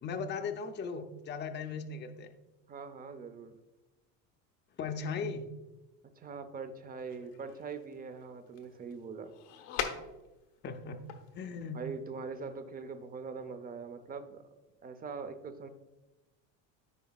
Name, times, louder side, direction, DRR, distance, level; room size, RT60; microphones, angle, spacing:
voice 1, 0.0-2.3 4.8-5.4 10.6-11.8, left 5 dB, 30° left, 6 dB, 0.6 m, -38 dB
voice 2, 2.7-3.6 6.2-9.3 11.7-14.5 14.8-15.7, right 5 dB, 25° right, 10 dB, 0.6 m, -42 dB
sound 1, 7.0-10.6 10.9-11.6, left 8 dB, 75° left, 1.2 m, -41 dB
13.0 x 5.0 x 2.3 m, 1.0 s
supercardioid pair, 125°, 38 cm